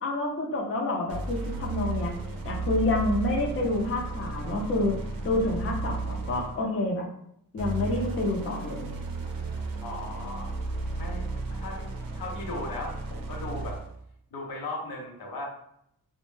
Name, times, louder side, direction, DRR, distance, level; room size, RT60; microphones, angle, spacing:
voice 1, 0.0-2.1 2.4-5.0 5.2-7.1 7.5-8.8, left 2 dB, 40° left, -2 dB, 0.6 m, -28 dB
sound 1, 1.1-6.7 7.6-14.0, right 3 dB, 85° right, 0.5 m, -34 dB
voice 2, 9.8-10.6 11.0-13.8 14.3-15.5, left 2 dB, 90° left, -1 dB, 0.7 m, -37 dB
2.1 x 2.0 x 3.1 m, 0.71 s
wide cardioid pair, 115°, 34 cm